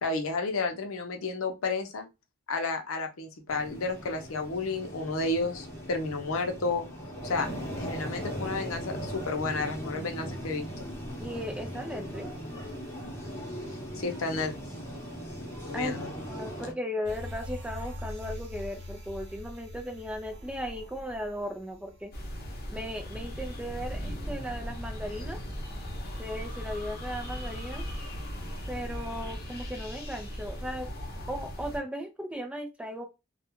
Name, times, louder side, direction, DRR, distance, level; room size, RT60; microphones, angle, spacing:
voice 1, 0.0-2.1 2.5-6.9 7.2-7.5 7.8-10.7 13.9-14.5 15.7-16.1, left 3 dB, 80° left, 0.6 m, -31 dB
sound 1, 3.5-16.7, equal, 15° left, 0.9 m, -39 dB
voice 2, 11.2-12.3 15.7-16.0 16.3-22.1 22.7-25.4 26.2-27.9 28.7-30.9 31.3-33.0, equal, 5° right, 0.4 m, -36 dB
sound 2, 17.0-22.7 23.0-23.1, left 1 dB, 60° right, 0.8 m, -42 dB
sound 3, 22.1-31.8, equal, 50° left, 0.8 m, -38 dB
2.3 x 2.2 x 3.0 m
head